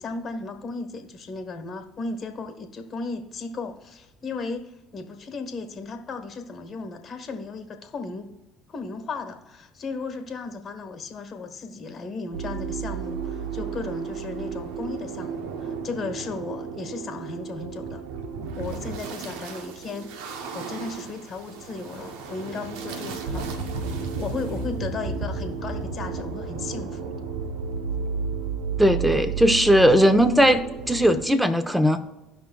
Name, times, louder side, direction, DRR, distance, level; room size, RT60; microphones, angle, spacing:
voice 1, 0.0-8.3 8.7-18.0 18.6-20.1 20.5-23.5 24.2-27.1, left 4 dB, 45° left, 5 dB, 1.3 m, -35 dB
sound 1, 12.3-31.3, right 5 dB, 75° right, 0.8 m, -33 dB
voice 2, 28.8-30.6 30.9-32.0, equal, 5° right, 9 dB, 0.9 m, -18 dB
16.0 x 5.6 x 2.3 m, 0.97 s
hypercardioid pair, 65°, 0 cm